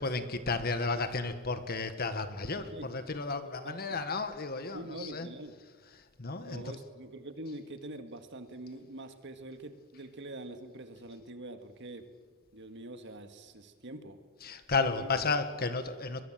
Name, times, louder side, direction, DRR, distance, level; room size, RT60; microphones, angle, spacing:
voice 1, 0.0-5.3 6.2-6.7 14.4-16.2, left 3 dB, 45° left, 10 dB, 1.7 m, -33 dB
voice 2, 2.6-2.9 3.6-4.0 4.7-5.5 6.4-12.0 12.5-14.2 14.8-15.3, right 1 dB, 60° right, 8 dB, 2.0 m, -44 dB
23.0 x 22.0 x 7.6 m, 1.5 s
head